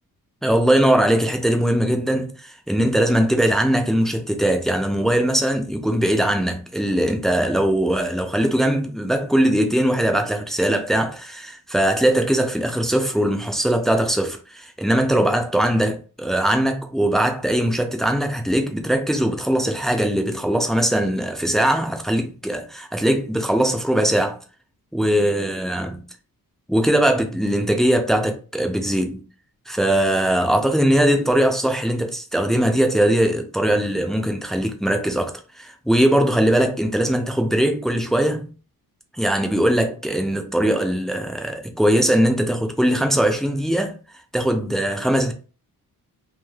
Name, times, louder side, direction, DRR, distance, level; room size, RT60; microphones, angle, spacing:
voice 1, 0.4-24.4 24.9-26.0 26.7-29.2 29.7-38.5 39.2-44.0 44.3-45.3, right 1 dB, ahead, 0.3 m, -20 dB
3.2 x 2.5 x 2.2 m
wide cardioid pair, 145°, 35 cm